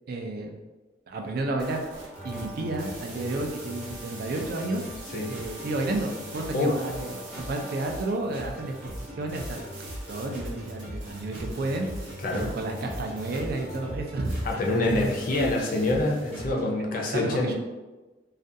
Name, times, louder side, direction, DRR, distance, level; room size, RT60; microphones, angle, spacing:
voice 1, 0.1-0.6 1.1-1.8 2.2-4.9 5.3-9.6 10.1-15.1 17.0-17.6, right 2 dB, 55° right, 3 dB, 0.3 m, -31 dB
sound 1, 1.4-11.0, right 2 dB, 5° right, 0.6 m, -47 dB
sound 2, 1.6-16.5, right 2 dB, 85° right, 0.7 m, -46 dB
sound 3, 2.1-16.7, equal, 35° right, 0.8 m, -40 dB
voice 2, 14.4-17.6, left 2 dB, 50° left, -1 dB, 0.5 m, -26 dB
2.4 x 2.2 x 2.6 m, 1.2 s
head